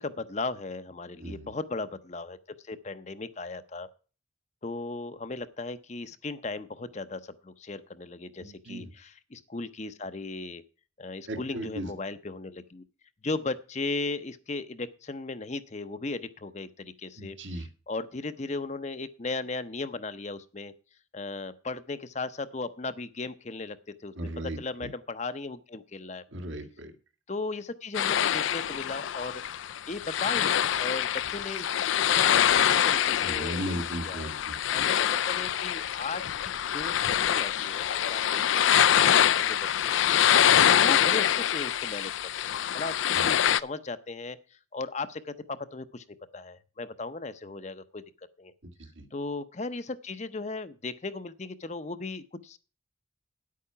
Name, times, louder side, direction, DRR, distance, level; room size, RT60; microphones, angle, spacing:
voice 1, 0.0-2.4 2.6-3.9 4.6-10.6 11.0-12.8 13.2-17.4 17.9-20.7 21.1-23.8 24.0-24.1 24.6-26.2 27.3-29.4 29.9-34.3 34.7-38.7 39.0-40.2 40.6-46.0 46.3-48.0 48.4-48.5 49.1-52.6, left 3 dB, 35° left, 12 dB, 0.6 m, -37 dB
voice 2, 1.2-1.5 8.4-8.9 11.3-11.9 17.2-17.7 24.2-24.9 26.3-26.9 33.2-34.8 43.1-43.3 48.6-49.1, right 1 dB, 75° right, 5 dB, 1.9 m, -37 dB
sound 1, 27.9-43.6, left 10 dB, 75° left, 0.4 m, -25 dB
9.9 x 8.5 x 5.6 m, 0.36 s
head